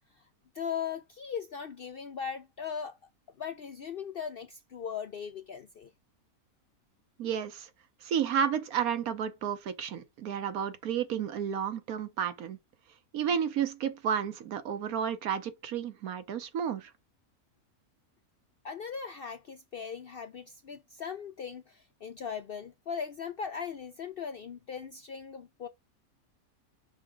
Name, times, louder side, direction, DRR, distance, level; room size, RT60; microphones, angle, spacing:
voice 1, 0.5-3.0 3.4-5.9 18.6-25.7, left 7 dB, 60° left, 0.6 m, -39 dB
voice 2, 7.2-7.7 8.0-12.6 13.1-16.9, right 8 dB, 75° right, 1.3 m, -32 dB
5.8 x 4.8 x 3.7 m
omnidirectional pair, 1.5 m